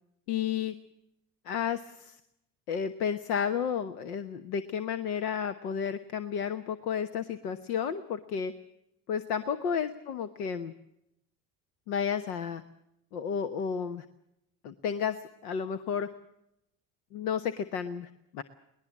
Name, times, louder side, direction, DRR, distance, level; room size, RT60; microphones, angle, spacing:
voice 1, 0.3-0.7 1.4-2.2 2.7-8.5 9.1-10.7 11.9-12.6 13.1-14.0 14.6-16.1 17.1-18.4, left 7 dB, 85° left, 10 dB, 1.2 m, -32 dB
22.0 x 19.5 x 7.3 m, 0.82 s
hypercardioid pair, 75°, 45 cm